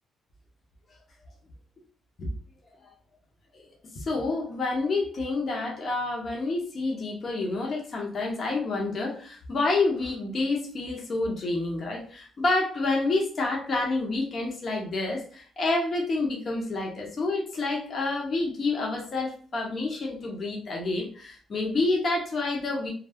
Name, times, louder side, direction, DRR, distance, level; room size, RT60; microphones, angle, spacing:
voice 1, 3.9-22.9, left 3 dB, 45° left, -1 dB, 0.8 m, -28 dB
2.3 x 2.0 x 3.4 m, 0.43 s
cardioid pair, 90°, 0 cm